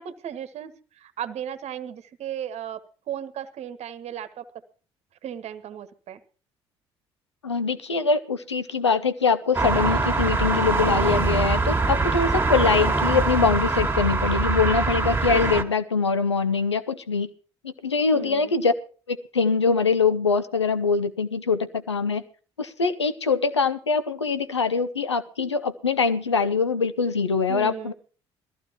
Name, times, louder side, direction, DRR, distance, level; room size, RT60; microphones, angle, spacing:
voice 1, 0.0-2.8 3.1-4.4 5.2-6.2 18.1-18.5 27.5-27.9, right 9 dB, 50° right, 12 dB, 1.2 m, -35 dB
voice 2, 7.4-17.3 17.6-18.7 19.1-22.2 22.6-27.9, left 4 dB, 85° left, 12 dB, 0.7 m, -23 dB
sound 1, 9.5-15.6, right 3 dB, 15° right, 2.0 m, -23 dB
20.0 x 14.5 x 2.9 m, 0.38 s
figure-of-eight pair, 50°, 14 cm